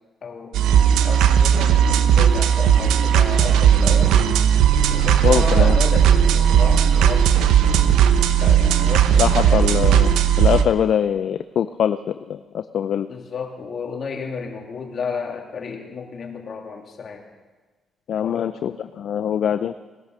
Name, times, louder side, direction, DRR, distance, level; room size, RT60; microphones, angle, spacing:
voice 1, 0.2-0.6 1.0-4.2 4.9-8.0 8.3-10.1 13.1-17.2 18.2-18.5, left 5 dB, 50° left, 1 dB, 2.8 m, -32 dB
sound 1, 0.5-10.6, right 9 dB, 90° right, 0.9 m, -16 dB
voice 2, 5.2-5.8 9.2-10.1 10.4-13.1 18.1-19.7, left 9 dB, 65° left, 11 dB, 0.5 m, -23 dB
18.5 x 11.5 x 6.6 m, 1.3 s
cardioid pair, 90°, 0 cm